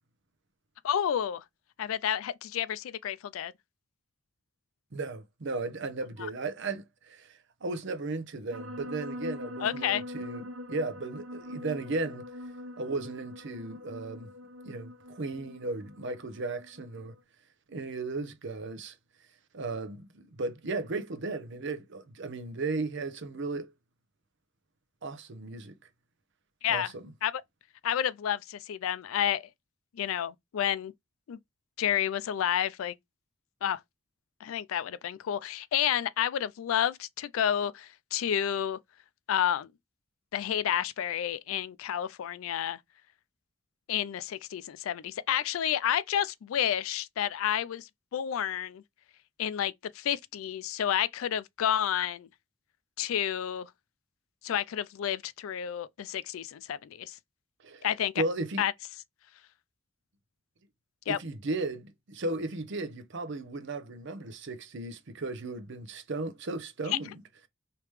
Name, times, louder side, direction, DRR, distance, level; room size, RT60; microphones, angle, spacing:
voice 1, 0.8-1.4 1.8-3.5 9.6-10.0 26.6-26.9 27.2-27.4 27.8-29.5 29.9-30.9 31.3-31.4 31.8-32.9 33.6-33.8 34.4-38.8 39.3-39.7 40.3-42.8 43.9-48.8 49.4-52.3 53.0-53.7 54.4-57.2 57.8-58.2 58.6-58.7 61.1-61.2, left 10 dB, 85° left, 0.3 m, -30 dB
voice 2, 4.9-12.2 12.8-14.3 14.6-17.1 17.7-19.0 19.5-23.7 25.0-25.8 26.7-27.1 57.6-57.9 58.2-58.6 61.1-67.2, right 3 dB, 60° right, 0.7 m, -35 dB
sound 1, 8.5-17.2, left 1 dB, 90° right, 1.1 m, -43 dB
3.1 x 2.9 x 3.2 m
head